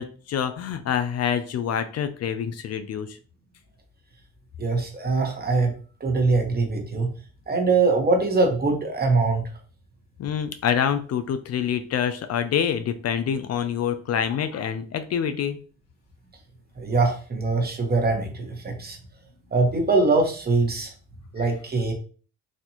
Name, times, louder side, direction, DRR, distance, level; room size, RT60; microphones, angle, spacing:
voice 1, 0.0-3.2 10.2-15.6 21.4-21.5, left 8 dB, 55° left, 10 dB, 0.5 m, -26 dB
voice 2, 4.6-5.7 6.0-7.1 7.5-9.5 16.8-19.0 19.5-20.9 21.3-21.9, right 3 dB, 30° right, 2 dB, 1.1 m, -22 dB
4.2 x 2.5 x 2.9 m, 0.39 s
cardioid pair, 90°, 30 cm